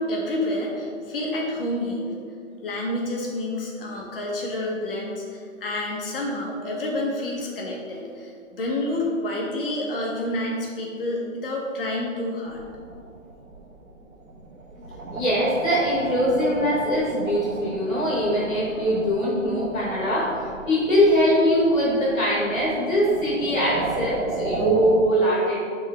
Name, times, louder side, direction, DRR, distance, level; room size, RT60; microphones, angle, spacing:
voice 1, 0.0-2.1 2.6-12.6, left 1 dB, 45° left, -2 dB, 1.3 m, -29 dB
sound 1, 12.5-25.0, right 2 dB, 90° right, 1.2 m, -35 dB
voice 2, 15.1-25.6, equal, 5° left, -19 dB, 0.5 m, -22 dB
9.3 x 3.8 x 3.4 m, 2.2 s
hypercardioid pair, 170°, 40 cm